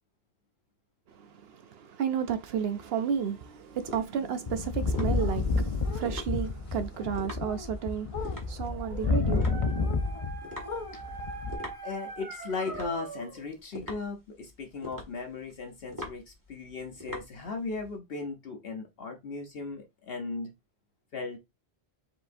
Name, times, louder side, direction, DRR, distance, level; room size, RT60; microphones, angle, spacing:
voice 1, 1.1-9.9, right 8 dB, 70° right, 0.8 m, -33 dB
sound 1, 2.4-17.9, left 1 dB, 20° right, 1.5 m, -44 dB
sound 2, 4.5-10.4 10.6-11.6, left 3 dB, 45° left, 0.4 m, -30 dB
Dog, 8.4-13.5, right 4 dB, 50° right, 1.4 m, -43 dB
voice 2, 11.8-20.5 21.1-21.4, left 4 dB, 65° left, 1.0 m, -37 dB
4.7 x 3.7 x 2.6 m
omnidirectional pair, 1.1 m